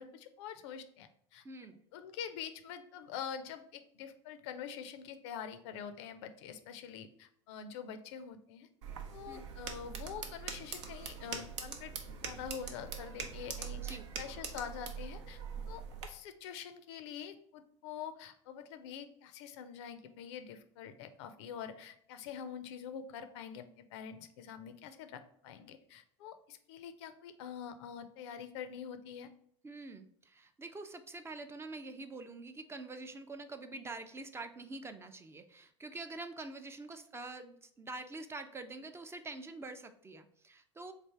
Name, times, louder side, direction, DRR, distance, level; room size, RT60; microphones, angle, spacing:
voice 1, 0.0-1.4 1.9-8.7 9.1-11.9 12.2-15.4 15.7-29.3, left 8 dB, 65° left, 10 dB, 0.5 m, -45 dB
voice 2, 1.4-1.8 9.3-9.4 13.8-14.0 29.6-40.9, right 3 dB, 15° right, 8 dB, 0.4 m, -46 dB
sound 1, 8.8-16.1, right 6 dB, 75° right, 0.6 m, -43 dB
3.3 x 2.5 x 4.5 m, 0.64 s
hypercardioid pair, 85°, 16 cm